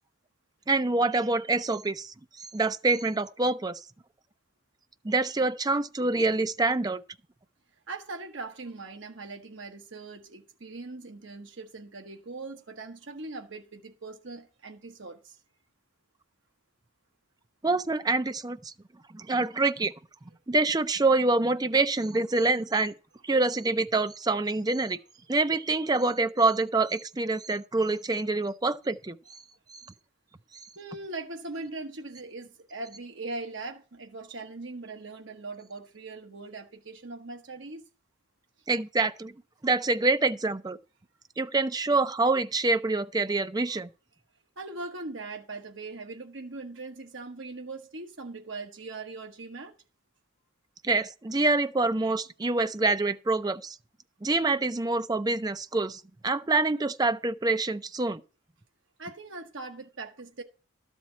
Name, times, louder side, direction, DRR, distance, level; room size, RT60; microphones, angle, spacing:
voice 1, 0.7-3.8 5.0-7.0 17.6-18.7 19.1-19.9 20.5-22.9 23.2-25.0 25.3-29.4 29.7-29.8 38.7-39.3 39.6-40.8 41.4-43.9 50.8-53.8 54.2-58.2, right 3 dB, 20° right, 0.4 m, -26 dB
voice 2, 7.9-15.4 30.8-37.8 44.6-49.7 59.0-60.4, right 3 dB, 65° right, 1.2 m, -40 dB
12.5 x 4.4 x 8.1 m
head